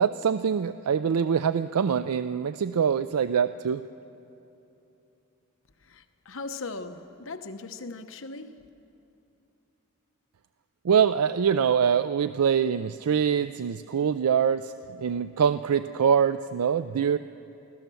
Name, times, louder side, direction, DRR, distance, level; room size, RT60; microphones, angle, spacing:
voice 1, 0.0-3.8 10.8-17.2, right 7 dB, 90° right, 12 dB, 0.4 m, -24 dB
voice 2, 5.9-8.6, left 3 dB, 60° left, 7 dB, 1.0 m, -39 dB
25.0 x 16.5 x 7.0 m, 3.0 s
head